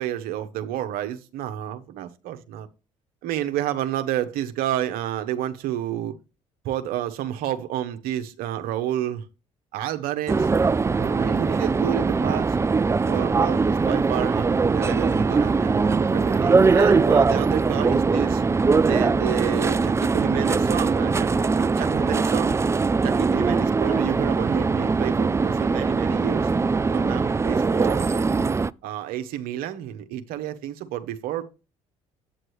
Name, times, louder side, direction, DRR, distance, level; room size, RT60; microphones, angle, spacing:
voice 1, 0.0-2.7 3.2-6.2 6.6-9.3 9.7-10.5 10.8-12.6 13.1-18.4 18.9-22.6 23.0-26.5 26.9-28.1 28.8-31.4, right 12 dB, 70° right, 1.0 m, -30 dB
sound 1, 10.3-28.7, right 4 dB, 15° right, 0.3 m, -21 dB
8.6 x 7.6 x 3.1 m
hypercardioid pair, 60°, 16 cm